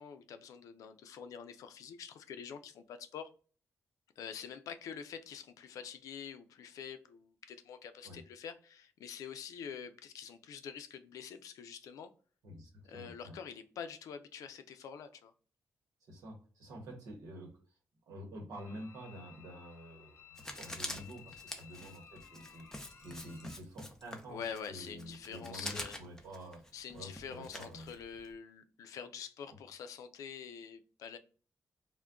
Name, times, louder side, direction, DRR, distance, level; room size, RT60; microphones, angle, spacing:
voice 1, 0.0-3.3 4.2-12.1 12.8-15.3 24.3-26.0 26.7-31.2, left 7 dB, 85° left, 0.4 m, -46 dB
voice 2, 12.4-13.4 16.0-17.8 18.1-22.7 23.0-27.9 29.5-29.6, equal, 85° right, 0.9 m, -49 dB
sound 1, 18.5-23.6, left 8 dB, 50° left, 0.8 m, -57 dB
Writing, 20.4-28.3, left 1 dB, 10° left, 0.6 m, -46 dB
2.2 x 2.1 x 3.5 m
cardioid pair, 80°, 6 cm